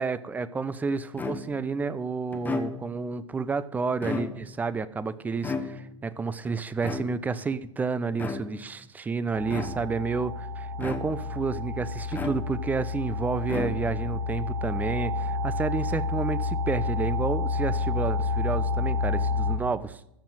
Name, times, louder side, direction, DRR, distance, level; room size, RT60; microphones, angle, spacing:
voice 1, 0.0-20.0, right 4 dB, 10° right, 17 dB, 0.4 m, -30 dB
sound 1, 1.2-1.7 2.3-3.1 3.9-4.7 5.4-6.1 6.8-7.5 8.1-8.7 9.5-10.1 10.8-11.4 12.1-12.8 13.4-14.2, left 4 dB, 10° left, 0.9 m, -35 dB
sound 2, 9.3-19.6, left 3 dB, 65° right, 2.8 m, -29 dB
14.0 x 5.6 x 7.6 m, 0.81 s
figure-of-eight pair, 105°, 17 cm